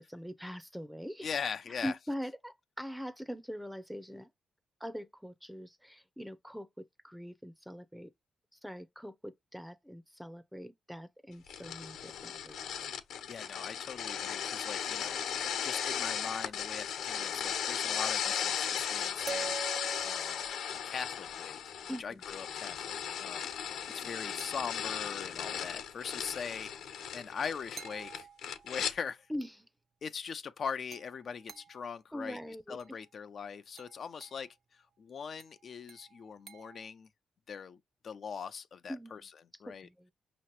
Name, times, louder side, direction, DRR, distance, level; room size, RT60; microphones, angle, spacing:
voice 1, 0.0-1.3 1.8-4.3 4.8-8.1 8.5-12.9 21.9-22.2 23.4-23.5 23.9-24.0 29.3-29.7 32.1-32.8 38.9-39.3 39.7-40.1, equal, ahead, 0.7 m, -42 dB
voice 2, 1.2-1.9 13.3-19.6 20.0-20.5 20.8-21.6 22.0-23.4 23.9-26.7 27.1-28.3 28.6-29.3 30.0-32.4 32.7-37.1 37.5-39.3 39.6-39.9, left 6 dB, 55° left, 0.5 m, -41 dB
sound 1, 11.5-28.9, left 8 dB, 80° left, 1.1 m, -36 dB
sound 2, 18.2-21.3 24.4-25.2 27.8-29.0 30.9-32.0 32.8-33.1 33.8-34.5 35.4-36.9, right 6 dB, 55° right, 0.7 m, -47 dB
5.5 x 3.0 x 3.0 m
supercardioid pair, 60°, 0 cm